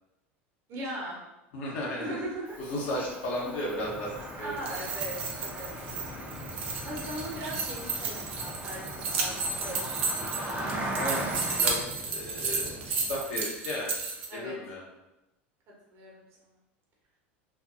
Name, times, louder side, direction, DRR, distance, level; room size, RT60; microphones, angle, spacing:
voice 1, 0.7-1.2 2.0-2.6 4.4-5.7 6.8-10.5 14.3-14.6 15.9-16.3, right 1 dB, 45° right, -3 dB, 0.9 m, -39 dB
voice 2, 1.5-2.2 2.6-4.8 6.1-6.2 10.9-11.3 11.6-11.8 12.1-13.9 14.3-14.8, left 1 dB, 70° left, -3 dB, 0.9 m, -34 dB
Cricket, 2.5-11.8, right 1 dB, 25° right, 0.5 m, -39 dB
Waves surf, 3.7-13.4, left 2 dB, 25° left, 0.5 m, -45 dB
sound 1, 4.4-14.3, right 4 dB, 75° right, 0.5 m, -33 dB
2.5 x 2.3 x 2.5 m, 0.94 s
hypercardioid pair, 95°, 7 cm